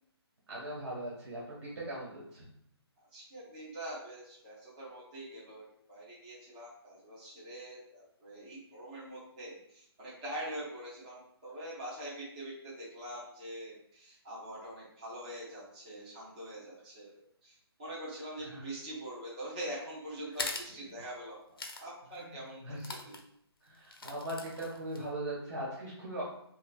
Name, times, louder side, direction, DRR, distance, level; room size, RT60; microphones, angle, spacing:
voice 1, 0.5-2.4 18.4-18.6 22.2-22.9 23.6-26.2, right 1 dB, 75° right, -7 dB, 1.4 m, -40 dB
voice 2, 3.0-22.7 23.0-23.2, right 1 dB, 15° right, -9 dB, 0.7 m, -44 dB
sound 1, 20.3-20.7 21.6-21.8 22.1-22.2 22.8-23.2 23.8-25.0, left 3 dB, 60° left, 0.6 m, -40 dB
5.1 x 2.3 x 2.3 m, 0.71 s
hypercardioid pair, 180°, 14 cm